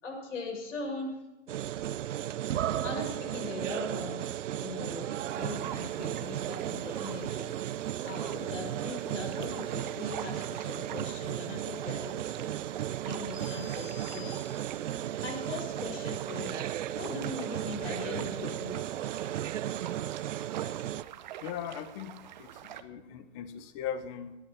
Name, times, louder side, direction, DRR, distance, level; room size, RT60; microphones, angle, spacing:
voice 1, 0.0-1.2 2.6-5.1 5.3-7.5 8.0-12.6 13.0-14.4 15.2-16.6 17.0-18.8, left 3 dB, 80° left, 2 dB, 6.3 m, -40 dB
sound 1, 1.5-21.0, right 11 dB, 80° right, 0.6 m, -35 dB
sound 2, 5.2-22.8, right 11 dB, 40° right, 0.8 m, -46 dB
sound 3, 13.3-15.0, left 5 dB, 5° right, 1.5 m, -50 dB
voice 2, 21.4-24.4, left 9 dB, 25° left, 11 dB, 1.1 m, -39 dB
18.0 x 11.0 x 6.0 m, 1.1 s
hypercardioid pair, 155°, 37 cm